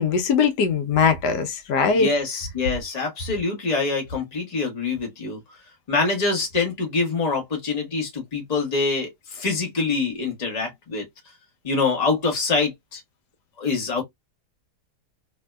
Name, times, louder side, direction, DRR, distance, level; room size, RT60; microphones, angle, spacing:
voice 1, 0.0-2.1, left 5 dB, 90° left, 1.3 m, -21 dB
voice 2, 1.9-5.4 5.9-11.0 11.6-13.0 13.6-14.0, left 4 dB, 25° left, 1.1 m, -25 dB
3.1 x 2.7 x 2.2 m
omnidirectional pair, 1.7 m